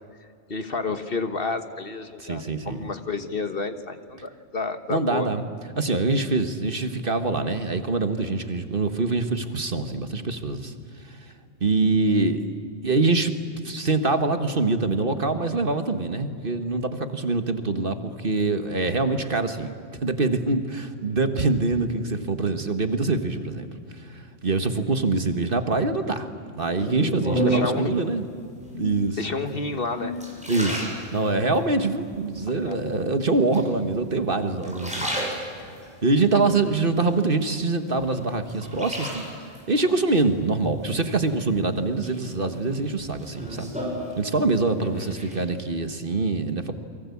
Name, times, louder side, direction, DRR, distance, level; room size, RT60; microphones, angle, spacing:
voice 1, 0.2-5.3 27.5-27.9 29.2-30.2 32.5-32.8 34.9-35.1 45.0-45.2, left 3 dB, 45° left, 9 dB, 1.5 m, -31 dB
voice 2, 2.2-2.8 4.9-5.4 5.8-10.7 11.0-11.2 11.6-12.5 12.8-13.3 13.6-19.7 20.0-28.3 28.7-29.2 30.5-30.8 31.1-39.2 39.7-43.7 44.2-46.7, right 3 dB, 45° right, 8 dB, 1.7 m, -24 dB
sound 1, 26.8-27.9 28.6-29.1 29.7-31.6 32.1-32.7 33.5-34.2 34.5-35.9 36.4-37.6 38.0-39.6 41.0-41.6 42.0-44.6 44.9-45.4, right 1 dB, 5° right, 6.8 m, -31 dB
29.5 x 23.5 x 8.5 m, 2.4 s
omnidirectional pair, 1.3 m